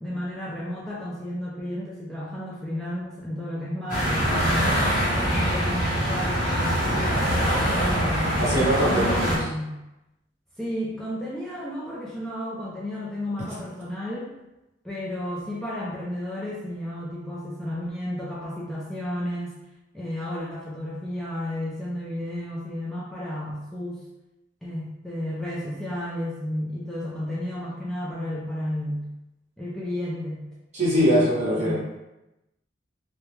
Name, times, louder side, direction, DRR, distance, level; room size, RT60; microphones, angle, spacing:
voice 1, 0.0-4.7 5.1-9.8 10.6-14.4 14.8-19.5 19.9-24.0 24.6-29.1 29.6-30.4 31.0-31.8, left 1 dB, ahead, -7 dB, 0.3 m, -32 dB
sound 1, 3.9-9.4, equal, 50° left, 0.8 m, -24 dB
voice 2, 8.4-9.3 30.7-31.8, equal, 40° right, -7 dB, 0.9 m, -22 dB
2.2 x 2.0 x 3.0 m, 0.95 s
head